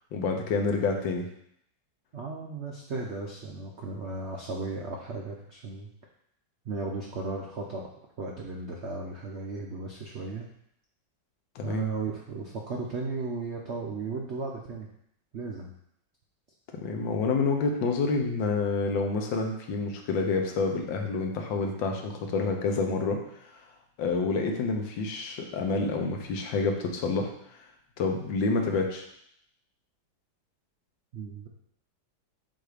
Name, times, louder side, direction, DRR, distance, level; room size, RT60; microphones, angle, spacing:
voice 1, 0.1-1.3 11.5-11.9 16.7-23.2 23.5-23.6 24.0-27.3 28.0-29.1, left 4 dB, 80° left, 3 dB, 1.5 m, -28 dB
voice 2, 2.1-5.9 6.6-7.9 8.2-10.5 11.6-14.9 15.3-15.7 31.1-31.5, right 3 dB, 80° right, 0 dB, 0.6 m, -35 dB
7.7 x 2.7 x 4.9 m, 0.73 s
omnidirectional pair, 2.1 m